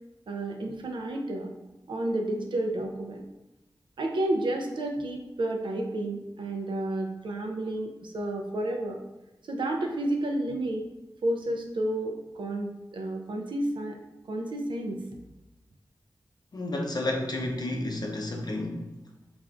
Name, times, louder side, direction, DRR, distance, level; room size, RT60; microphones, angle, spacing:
voice 1, 0.3-1.5 1.9-3.2 4.0-9.0 9.4-10.8 11.2-14.0 14.3-15.0, right 1 dB, 80° right, 2 dB, 0.4 m, -31 dB
voice 2, 16.5-18.8, left 2 dB, 55° left, 1 dB, 0.5 m, -31 dB
3.2 x 2.4 x 2.4 m, 0.95 s
cardioid pair, 45°, 8 cm